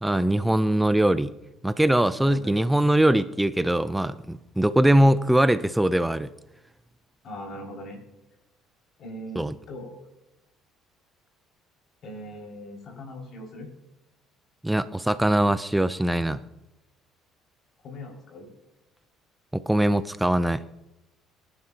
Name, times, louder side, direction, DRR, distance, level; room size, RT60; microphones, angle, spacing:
voice 1, 0.0-1.3 1.6-6.3 9.4-9.5 14.6-16.4 19.5-20.6, right 1 dB, 5° right, 14 dB, 0.6 m, -22 dB
voice 2, 2.1-2.7 5.0-5.1 7.2-8.0 9.0-10.0 12.0-13.7 17.8-18.5, equal, 55° left, 0 dB, 5.8 m, -40 dB
23.0 x 11.5 x 2.9 m, 0.95 s
cardioid pair, 100°, 0 cm